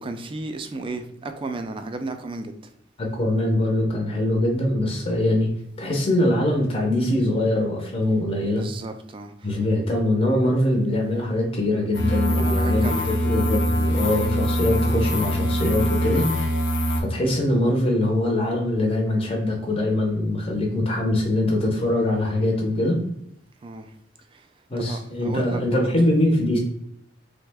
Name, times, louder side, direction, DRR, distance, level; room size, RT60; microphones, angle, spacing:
voice 1, 0.0-2.6 8.4-9.7 12.3-13.2 23.6-23.9 24.3-24.5 24.8-26.1, right 2 dB, 30° right, 0.3 m, -34 dB
voice 2, 3.0-5.5 5.8-8.7 9.4-16.3 17.0-23.0 24.7-26.6, left 1 dB, 30° left, 0.6 m, -23 dB
sound 1, 11.9-17.0, equal, 80° left, 0.6 m, -23 dB
3.2 x 2.1 x 3.3 m
head